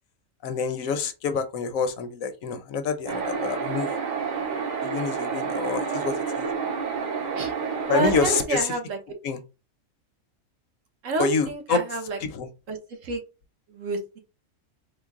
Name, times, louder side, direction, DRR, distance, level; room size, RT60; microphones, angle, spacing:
voice 1, 0.4-3.9 4.8-6.5 7.9-8.7 9.2-9.4 11.2-11.8 12.2-12.5, left 5 dB, 75° left, 1.0 m, -27 dB
sound 1, 3.1-8.4, right 6 dB, 45° right, 0.7 m, -29 dB
voice 2, 7.9-9.0 11.0-12.2 12.7-12.8 13.0-13.2 13.7-14.2, right 3 dB, 65° right, 1.2 m, -29 dB
3.8 x 2.1 x 3.5 m
omnidirectional pair, 1.4 m